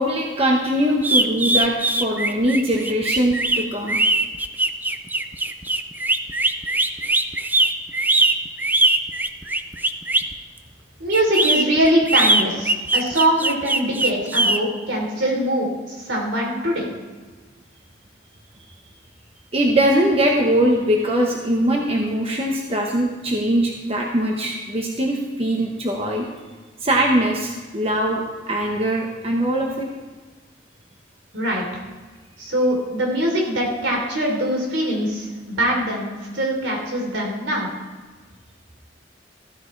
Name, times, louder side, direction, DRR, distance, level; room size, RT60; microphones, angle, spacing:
voice 1, 0.0-4.0 19.5-26.2 26.8-28.2 28.5-29.9, right 1 dB, 30° right, -1 dB, 1.2 m, -21 dB
sound 1, 1.0-10.3 11.1-14.6, right 2 dB, 10° right, 0.4 m, -20 dB
voice 2, 11.0-15.7 16.0-16.9 31.3-31.7 32.4-37.7, right 1 dB, 75° right, -1 dB, 3.5 m, -22 dB
14.5 x 13.5 x 3.3 m, 1.4 s
head